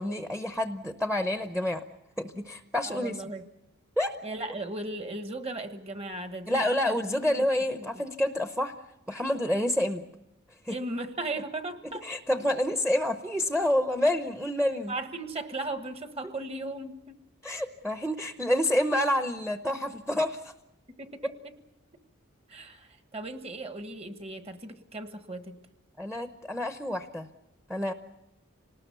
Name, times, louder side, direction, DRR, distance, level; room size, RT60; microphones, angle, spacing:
voice 1, 0.0-1.8 2.2-3.2 4.0-4.1 6.5-8.7 9.1-10.0 10.6-10.8 12.0-14.9 17.4-20.5 26.0-27.3 27.7-27.9, left 1 dB, 5° right, 7 dB, 0.8 m, -28 dB
voice 2, 2.8-3.5 4.2-7.0 7.3-8.0 10.7-12.1 14.9-17.2 20.9-21.5 22.5-25.6, right 2 dB, 30° right, 8 dB, 1.3 m, -37 dB
27.5 x 19.5 x 6.9 m, 0.89 s
head